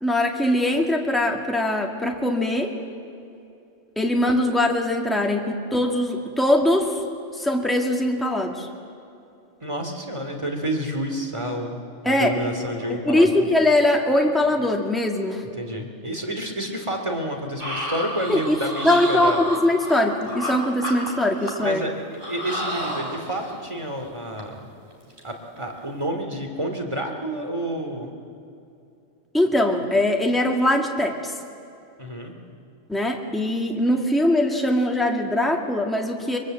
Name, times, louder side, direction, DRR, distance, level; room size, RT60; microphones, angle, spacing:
voice 1, 0.0-2.7 4.0-7.0 7.4-8.7 12.1-12.5 12.9-15.4 18.3-18.6 18.8-21.8 29.3-31.3 32.9-36.4, left 1 dB, ahead, 1 dB, 1.9 m, -21 dB
voice 2, 9.6-13.4 15.6-19.5 21.6-24.7 25.2-28.1 32.0-32.3, right 1 dB, 20° right, 4 dB, 2.6 m, -29 dB
sound 1, 17.6-20.5 20.8-21.8 22.1-23.6 24.0-24.1 24.4-24.6 24.9-25.2 25.6-25.8, equal, 45° right, 3.8 m, -31 dB
23.5 x 23.0 x 7.7 m, 2.7 s
omnidirectional pair, 1.4 m